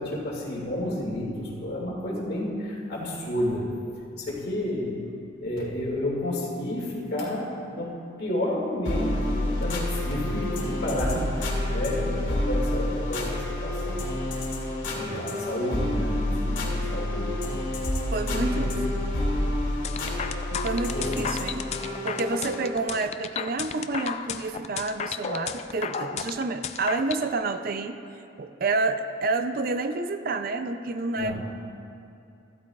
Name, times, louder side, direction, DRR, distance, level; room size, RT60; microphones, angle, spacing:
voice 1, 0.0-3.6 4.2-4.9 5.4-7.9 8.2-14.0 14.9-17.3 18.3-18.9 20.9-21.2 31.2-31.4, left 1 dB, 55° left, -4 dB, 2.3 m, -31 dB
sound 1, 8.8-22.7, left 1 dB, 75° left, 2.3 m, -29 dB
voice 2, 18.1-18.7 19.0-19.1 20.5-21.6 22.0-28.0 28.4-31.4, right 3 dB, 50° right, 9 dB, 0.4 m, -29 dB
sound 2, 19.8-27.2, left 7 dB, 35° left, 0.3 m, -33 dB
15.0 x 12.5 x 2.4 m, 2.6 s
head